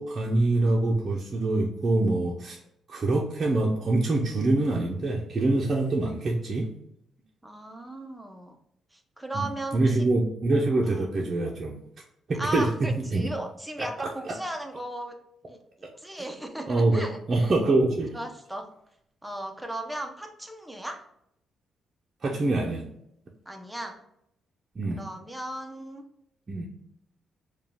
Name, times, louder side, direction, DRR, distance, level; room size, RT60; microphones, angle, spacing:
voice 1, 0.0-2.6 2.9-6.7 9.3-9.5 9.7-11.8 12.3-13.3 13.8-14.3 16.7-18.2 22.2-22.8 24.8-25.0 26.5-26.7, right 2 dB, 35° right, -2 dB, 0.6 m, -25 dB
voice 2, 7.4-8.6 8.9-10.1 10.8-11.1 12.3-15.2 15.5-17.5 18.1-18.7 19.2-21.1 23.5-24.0 24.9-26.1, right 1 dB, 5° right, 4 dB, 0.7 m, -36 dB
4.7 x 2.3 x 3.5 m, 0.76 s
cardioid pair, 90°, 0 cm